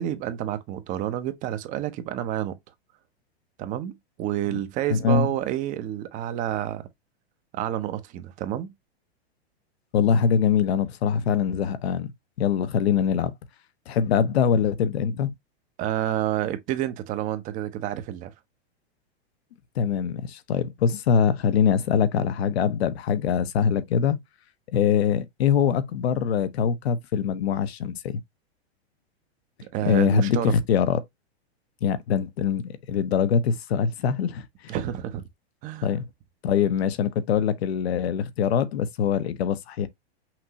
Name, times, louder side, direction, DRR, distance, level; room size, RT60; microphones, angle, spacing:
voice 1, 0.0-2.6 3.6-6.9 7.5-8.7 15.8-18.3 29.6-30.6 34.7-35.2 35.6-35.9, right 12 dB, 25° right, 0.6 m, -29 dB
voice 2, 4.9-5.3 9.9-12.1 12.4-13.3 13.9-15.3 19.8-24.2 24.7-28.2 29.8-31.0 31.8-34.7 35.8-36.0 36.4-39.9, left 7 dB, 80° left, 0.9 m, -23 dB
5.9 x 2.6 x 2.8 m
supercardioid pair, 150°, 32 cm